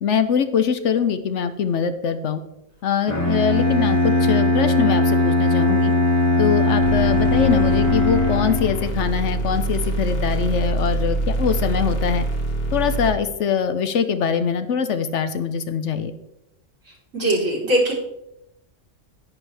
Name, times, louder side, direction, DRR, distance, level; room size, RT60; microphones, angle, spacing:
voice 1, 0.0-2.4 2.8-5.9 6.4-12.3 12.7-16.1, left 7 dB, 70° left, 10 dB, 1.0 m, -23 dB
Bowed string instrument, 3.1-9.0, left 2 dB, 15° left, 2.0 m, -19 dB
sound 1, 6.8-13.1, right 1 dB, 50° left, 2.0 m, -25 dB
voice 2, 16.9-17.9, right 1 dB, 85° right, -5 dB, 3.9 m, -21 dB
10.5 x 10.5 x 3.3 m, 0.85 s
omnidirectional pair, 1.3 m